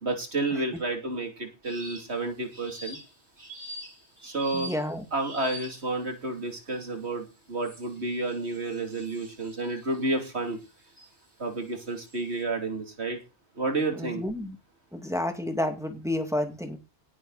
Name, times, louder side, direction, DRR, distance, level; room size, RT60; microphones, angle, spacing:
voice 1, 0.0-3.0 4.2-4.7 5.1-10.6 11.4-13.2 13.6-14.2, right 2 dB, 70° right, 4 dB, 3.4 m, -30 dB
sound 1, 1.6-2.2 2.5-6.0 6.7-7.0 7.6-11.1 11.7-12.4, right 1 dB, 90° right, 7.2 m, -45 dB
voice 2, 4.5-5.0 13.9-14.6 14.9-16.8, left 1 dB, 5° right, 5 dB, 2.3 m, -30 dB
18.5 x 10.0 x 4.2 m, 0.31 s
omnidirectional pair, 1.2 m